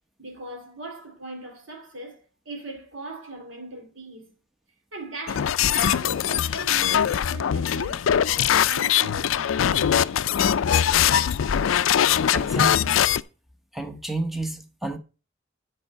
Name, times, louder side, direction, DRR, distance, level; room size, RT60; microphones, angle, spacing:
voice 1, 0.2-4.4 4.9-10.2, right 2 dB, 70° right, 2.6 m, -40 dB
sound 1, 5.3-13.2, left 9 dB, 75° left, 0.4 m, -22 dB
voice 2, 12.3-13.0 13.7-15.0, right 2 dB, ahead, 0.9 m, -31 dB
9.4 x 4.7 x 5.5 m
head